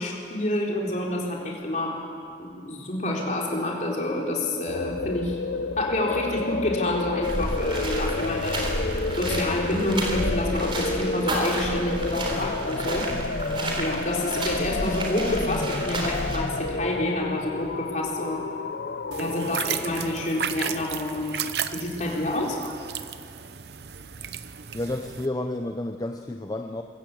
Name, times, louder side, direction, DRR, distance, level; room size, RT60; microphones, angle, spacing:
voice 1, 0.0-2.0 2.4-5.4 5.8-8.7 9.1-13.2 13.8-18.4 19.2-21.4 21.7-22.6, left 1 dB, 45° left, -2 dB, 3.9 m, -28 dB
sound 1, 4.7-19.6, left 3 dB, 65° left, 0.6 m, -30 dB
sound 2, 7.2-16.4, right 1 dB, 30° right, 3.5 m, -31 dB
sound 3, 19.1-25.3, right 8 dB, 65° right, 0.8 m, -34 dB
voice 2, 24.7-26.8, left 1 dB, 20° left, 4 dB, 0.7 m, -30 dB
23.5 x 15.0 x 8.6 m, 2.3 s
head